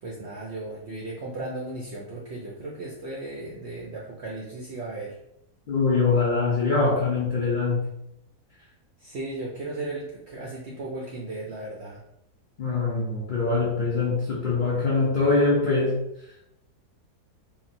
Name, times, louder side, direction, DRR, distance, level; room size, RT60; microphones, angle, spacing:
voice 1, 0.0-5.2 9.0-12.0, right 2 dB, 70° right, -4 dB, 0.6 m, -36 dB
voice 2, 5.7-7.9 12.6-16.0, left 3 dB, 70° left, -5 dB, 0.4 m, -23 dB
3.7 x 2.1 x 2.6 m, 0.81 s
omnidirectional pair, 1.7 m